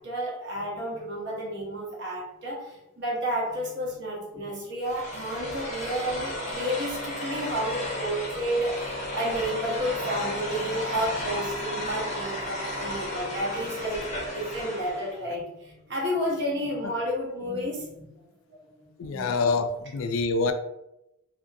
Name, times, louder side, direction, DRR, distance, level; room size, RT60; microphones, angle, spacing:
voice 1, 0.0-18.2 18.5-18.6 19.1-19.4, equal, 55° right, -3 dB, 0.9 m, -31 dB
sound 1, 4.8-15.1, left 1 dB, 30° left, 0.6 m, -34 dB
voice 2, 19.0-20.5, left 4 dB, 70° left, 8 dB, 0.3 m, -26 dB
2.9 x 2.5 x 2.6 m, 0.90 s
head